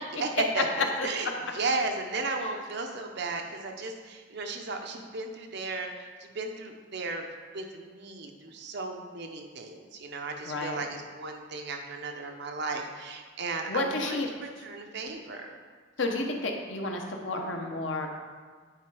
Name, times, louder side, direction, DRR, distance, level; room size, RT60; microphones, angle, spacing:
voice 1, 0.1-7.3 7.5-15.6, right 3 dB, 60° right, 3 dB, 0.8 m, -35 dB
voice 2, 10.5-10.8 13.7-14.3 16.0-18.1, left 2 dB, 75° left, 2 dB, 1.0 m, -31 dB
9.1 x 4.4 x 4.9 m, 1.5 s
head